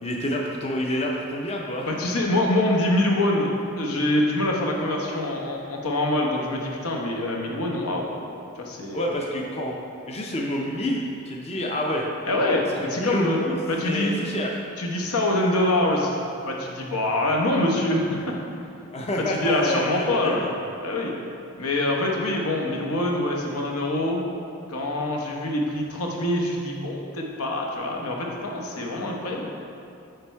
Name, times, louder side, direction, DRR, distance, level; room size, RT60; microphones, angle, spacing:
voice 1, 0.0-1.9 8.9-9.8 10.1-12.1 12.8-13.6 13.8-14.5 18.9-20.5, left 1 dB, 30° left, 0 dB, 0.5 m, -28 dB
voice 2, 1.9-3.5 3.8-8.1 8.6-9.0 12.3-12.6 12.9-13.4 13.7-14.1 14.8-16.2 16.5-18.3 19.2-20.5 20.8-21.1 21.6-24.2 24.7-29.5, left 1 dB, 80° left, -1 dB, 0.9 m, -25 dB
8.7 x 3.4 x 4.5 m, 2.6 s
head